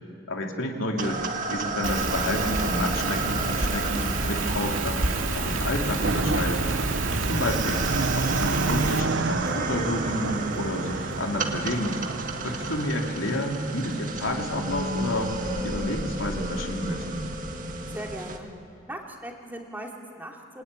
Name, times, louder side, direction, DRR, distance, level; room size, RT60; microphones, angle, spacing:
voice 1, 0.3-1.2 1.5-6.6 7.2-12.0 12.4-17.0, left 1 dB, 85° left, 1 dB, 3.2 m, -30 dB
sound 1, 1.0-18.4, right 3 dB, 40° right, 1.7 m, -33 dB
Rain, 1.8-9.0, right 3 dB, 85° right, 2.5 m, -28 dB
sound 2, 6.0-14.1, right 3 dB, 65° right, 0.8 m, -30 dB
voice 2, 17.9-18.5 18.9-20.6, right 1 dB, 10° right, 0 dB, 2.7 m, -39 dB
26.0 x 21.0 x 9.9 m, 2.6 s
head